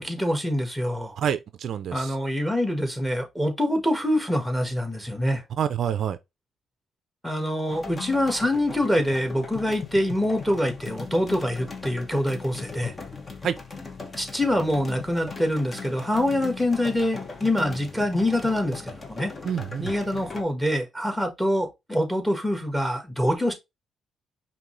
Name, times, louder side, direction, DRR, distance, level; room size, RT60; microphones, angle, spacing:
voice 1, 0.0-1.1 1.9-5.4 7.2-12.9 14.2-19.3 19.8-23.5, left 1 dB, 5° left, 1.4 m, -25 dB
voice 2, 1.2-2.2 5.6-6.2 13.4-13.6 19.4-19.9, right 8 dB, 65° right, 0.4 m, -27 dB
sound 1, 7.7-20.4, left 4 dB, 30° left, 1.0 m, -39 dB
5.2 x 2.8 x 3.1 m
cardioid pair, 90°, 0 cm